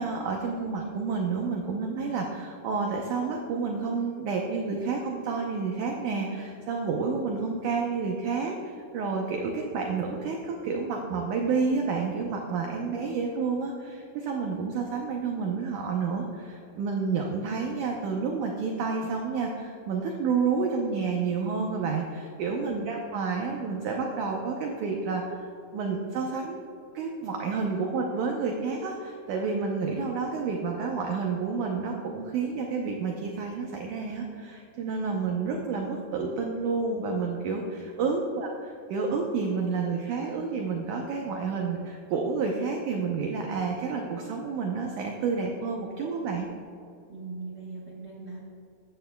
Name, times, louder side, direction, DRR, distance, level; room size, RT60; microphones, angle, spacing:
voice 1, 0.0-26.6 26.9-46.5, right 4 dB, 75° right, 1 dB, 1.9 m, -30 dB
voice 2, 47.1-48.4, right 3 dB, 90° right, -4 dB, 0.9 m, -41 dB
15.5 x 11.0 x 2.3 m, 2.6 s
omnidirectional pair, 4.4 m